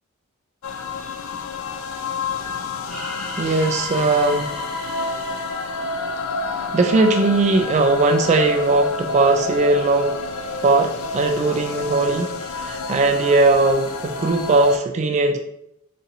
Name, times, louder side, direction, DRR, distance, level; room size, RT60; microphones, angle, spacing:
sound 1, 0.6-14.8, left 3 dB, 75° left, 0.3 m, -29 dB
sound 2, 2.9-6.9, left 1 dB, 5° left, 0.6 m, -36 dB
voice 1, 3.4-4.5 6.7-10.2 10.6-15.4, right 3 dB, 35° right, 4 dB, 0.3 m, -19 dB
2.7 x 2.6 x 4.0 m, 0.78 s
head